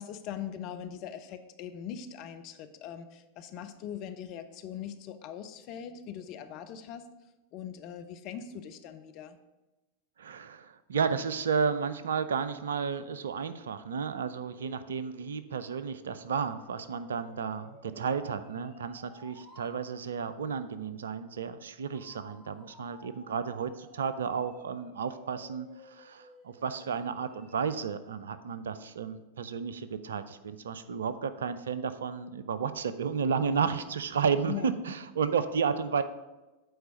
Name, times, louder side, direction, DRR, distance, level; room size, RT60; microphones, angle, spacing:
voice 1, 0.0-7.1 7.5-9.4 34.5-34.7, left 9 dB, 40° left, 9 dB, 0.6 m, -41 dB
voice 2, 10.2-36.0, right 6 dB, 65° right, 12 dB, 0.4 m, -32 dB
sound 1, 14.5-19.8 21.9-27.8, equal, 5° left, 1.6 m, -56 dB
7.9 x 4.5 x 5.1 m, 1.1 s
figure-of-eight pair, 90°, 0 cm